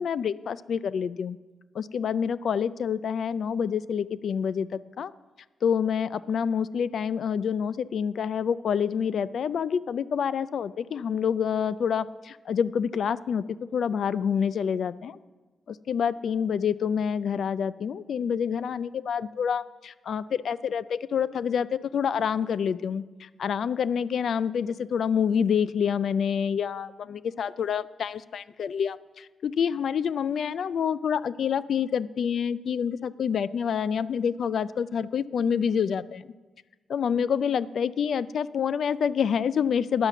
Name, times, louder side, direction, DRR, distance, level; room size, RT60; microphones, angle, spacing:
voice 1, 0.0-1.4 1.8-5.1 5.6-13.4 13.7-15.2 15.7-36.2 36.9-40.1, left 7 dB, 55° left, 18 dB, 0.3 m, -27 dB
10.0 x 8.3 x 6.8 m, 1.2 s
wide cardioid pair, 180°, 0 cm